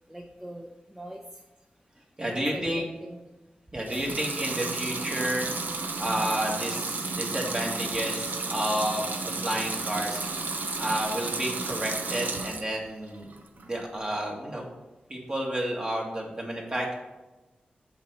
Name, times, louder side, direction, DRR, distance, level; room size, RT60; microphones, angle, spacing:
voice 1, 0.1-1.2 2.2-3.2 3.9-4.1, equal, 10° right, 0 dB, 0.7 m, -41 dB
voice 2, 2.2-2.8 3.7-5.5 6.0-9.1 9.4-10.2 10.8-13.3 13.6-14.6 15.1-16.9, right 1 dB, 30° right, -1 dB, 2.0 m, -30 dB
Water tap faucet / Sink (filling or washing) / Liquid, 3.8-12.7 13.1-13.9, right 3 dB, 65° right, 0.8 m, -32 dB
7.1 x 4.3 x 6.8 m, 1.1 s
wide cardioid pair, 80°, 3 cm